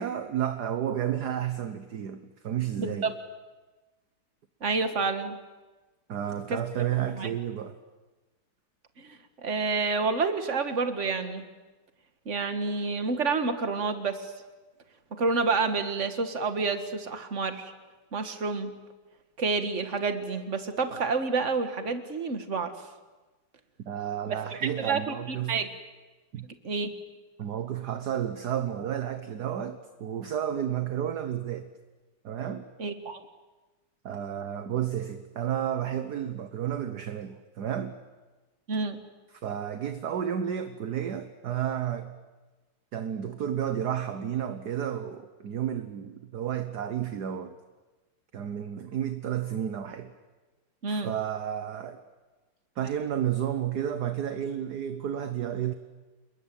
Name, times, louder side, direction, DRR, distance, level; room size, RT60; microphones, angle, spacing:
voice 1, 0.0-3.1 6.1-7.8 23.9-25.6 26.3-26.5 27.4-31.7 32.2-32.7 34.0-38.0 39.4-42.2 42.9-47.5 48.3-50.1 50.9-52.0 52.8-55.7, right 9 dB, 55° right, 9 dB, 1.5 m, -31 dB
voice 2, 2.8-3.1 4.6-5.4 6.5-6.6 7.1-7.3 9.0-11.5 12.3-14.3 15.1-17.7 18.1-18.8 19.4-22.7 24.3-25.7 26.6-26.9 32.8-33.2 38.7-39.0 50.8-51.1, right 4 dB, 35° right, 8 dB, 2.0 m, -29 dB
28.5 x 21.5 x 9.1 m, 1.2 s
omnidirectional pair, 2.3 m